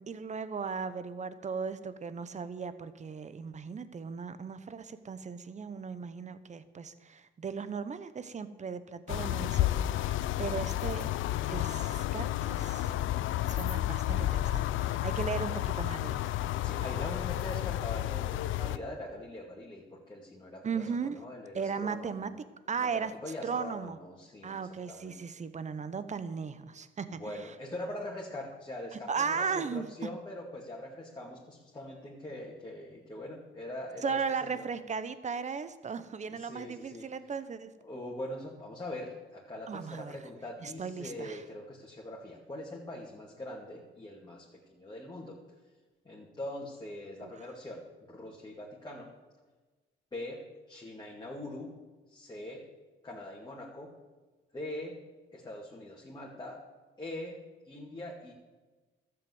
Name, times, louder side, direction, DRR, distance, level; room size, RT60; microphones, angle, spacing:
voice 1, 0.0-11.1 11.5-12.9 13.5-16.4 20.6-21.2 21.5-22.3 22.7-23.1 23.4-24.0 24.4-27.3 28.9-29.9 34.0-37.7 39.7-40.2 40.6-41.4 47.2-47.3, right 6 dB, 35° right, 13 dB, 1.0 m, -37 dB
sound 1, 9.1-18.8, left 14 dB, 80° left, 0.5 m, -31 dB
voice 2, 16.6-22.3 22.8-24.6 24.9-25.2 27.1-34.6 36.3-37.1 37.8-45.4 46.0-49.1 50.1-50.4 50.7-51.7 52.1-52.6 53.0-53.9 54.5-54.9 55.3-56.6 57.0-57.4 57.6-58.3, left 1 dB, 20° left, -4 dB, 2.5 m, -42 dB
12.5 x 7.9 x 8.0 m, 1.3 s
cardioid pair, 90°, 20 cm